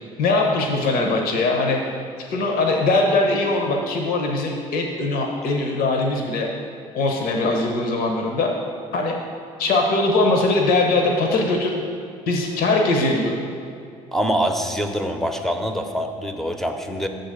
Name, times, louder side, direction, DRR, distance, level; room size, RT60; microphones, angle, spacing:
voice 1, 0.2-1.8 2.3-6.5 6.9-8.5 8.9-9.1 9.6-11.7 12.3-13.4, left 2 dB, 60° left, 1 dB, 0.9 m, -21 dB
voice 2, 14.1-17.1, equal, ahead, 5 dB, 0.7 m, -24 dB
7.2 x 3.9 x 6.6 m, 2.4 s
hypercardioid pair, 55°, 17 cm